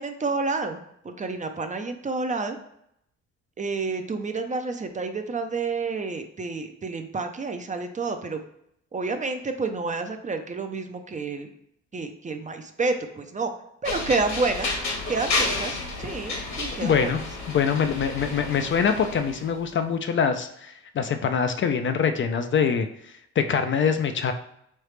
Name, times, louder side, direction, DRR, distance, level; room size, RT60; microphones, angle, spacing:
voice 1, 0.0-2.6 3.6-8.4 8.9-11.5 11.9-13.5 13.8-14.7 15.1-17.1, right 3 dB, 25° right, 7 dB, 0.5 m, -29 dB
sound 1, 13.8-19.5, left 3 dB, 60° left, 1.2 m, -31 dB
voice 2, 16.8-17.2 17.5-22.9 23.4-24.3, left 6 dB, 40° left, 8 dB, 0.4 m, -24 dB
3.7 x 3.2 x 3.2 m, 0.75 s
cardioid pair, 90°, 30 cm